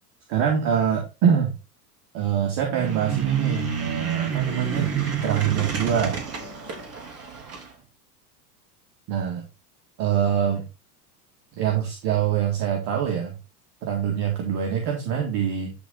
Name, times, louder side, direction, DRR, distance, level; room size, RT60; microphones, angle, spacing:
voice 1, 0.3-1.5 2.1-6.2 9.1-9.4 10.0-10.6 11.6-13.3 13.8-15.7, right 8 dB, 55° right, 1 dB, 2.2 m, -24 dB
sound 1, 2.7-7.7, right 7 dB, 30° right, 3.2 m, -28 dB
11.0 x 4.0 x 3.9 m, 0.28 s
hypercardioid pair, 105°, 47 cm